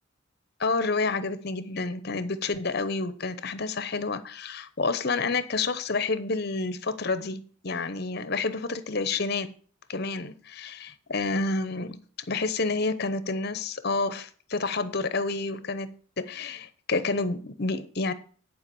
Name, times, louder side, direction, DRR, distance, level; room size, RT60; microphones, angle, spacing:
voice 1, 0.6-9.5 9.9-12.0 12.3-15.9 16.2-18.1, left 3 dB, 50° left, 0.8 m, -29 dB
10.5 x 4.9 x 6.9 m
head